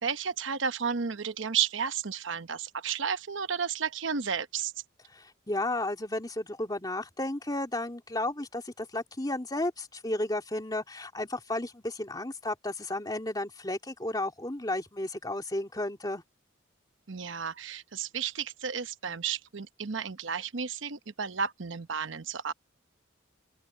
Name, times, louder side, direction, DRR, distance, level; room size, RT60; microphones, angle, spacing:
voice 1, 0.0-4.7 17.1-22.5, right 7 dB, 75° right, 0.9 m, -32 dB
voice 2, 5.1-16.2, left 1 dB, 20° left, 2.9 m, -33 dB
open air
head